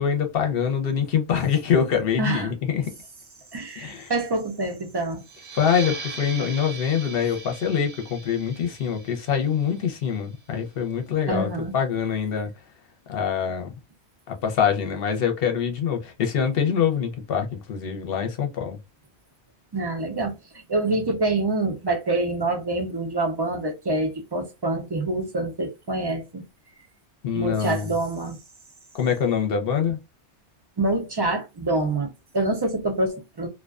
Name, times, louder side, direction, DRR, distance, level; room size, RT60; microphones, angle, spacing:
voice 1, 0.0-2.9 3.8-4.1 5.5-12.5 13.1-13.7 14.3-18.8 27.2-27.9 28.9-30.0, left 7 dB, 60° left, 0.8 m, -24 dB
voice 2, 2.2-2.5 3.5-5.2 11.3-11.7 19.7-20.4 20.7-26.4 27.3-28.4 30.8-33.5, right 2 dB, 40° right, 0.3 m, -26 dB
sound 1, 5.3-10.5, right 4 dB, 70° right, 1.0 m, -39 dB
2.4 x 2.2 x 2.3 m
omnidirectional pair, 1.2 m